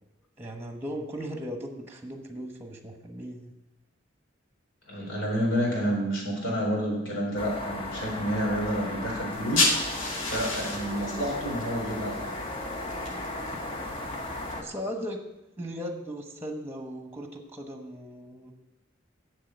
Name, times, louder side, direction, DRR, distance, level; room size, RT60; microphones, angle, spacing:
voice 1, 0.4-3.5 14.6-15.3 15.6-18.5, equal, 10° right, 4 dB, 1.2 m, -37 dB
voice 2, 4.9-9.7 10.3-12.2, equal, 70° left, -2 dB, 4.0 m, -29 dB
sound 1, 7.4-14.6, left 1 dB, 30° left, 1.0 m, -36 dB
sound 2, 9.3-14.5, left 2 dB, 90° left, 2.0 m, -32 dB
7.5 x 7.0 x 8.1 m, 0.95 s
head